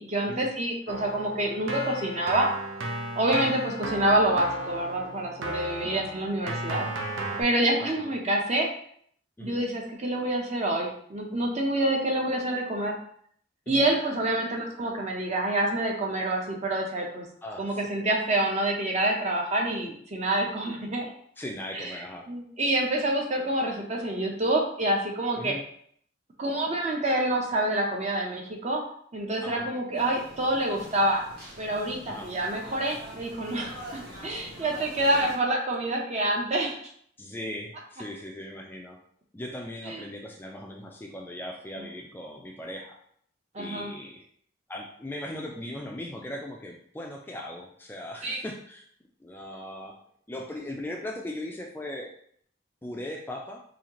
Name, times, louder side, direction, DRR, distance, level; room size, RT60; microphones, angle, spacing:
voice 1, 0.0-2.5 3.1-6.9 7.4-8.7 9.4-12.9 13.7-17.3 17.6-21.1 21.7-21.9 22.3-25.5 26.4-28.8 29.1-31.2 31.6-36.8 39.9-40.0 43.5-43.9 48.2-48.4, right 1 dB, 35° right, 0 dB, 0.7 m, -27 dB
Keyboard (musical), 0.9-7.4, right 1 dB, 90° right, 0.7 m, -35 dB
voice 2, 7.8-8.1 9.4-9.6 13.7-13.9 17.4-17.8 21.4-22.3 25.4-25.6 29.4-29.7 32.1-32.3 37.2-39.0 39.3-43.0 43.6-44.2 44.7-48.8 49.2-50.0 50.3-52.1 52.8-53.6, left 1 dB, 10° left, 0 dB, 0.3 m, -38 dB
sound 1, 29.9-35.4, equal, 55° right, 1.5 m, -44 dB
4.1 x 2.8 x 2.9 m, 0.63 s
head